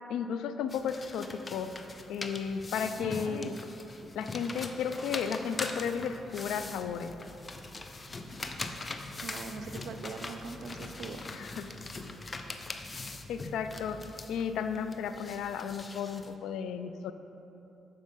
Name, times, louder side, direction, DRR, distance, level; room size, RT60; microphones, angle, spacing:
voice 1, 0.1-1.7 2.1-3.6 4.2-7.1 11.3-11.7 13.3-14.0 14.3-17.1, left 7 dB, 80° left, 10 dB, 0.3 m, -34 dB
sound 1, 0.7-16.3, left 3 dB, 30° left, 0.5 m, -42 dB
voice 2, 3.0-3.5 9.2-11.3, right 5 dB, 70° right, 7 dB, 0.5 m, -42 dB
7.3 x 4.5 x 5.2 m, 3.0 s
supercardioid pair, 65°, 0 cm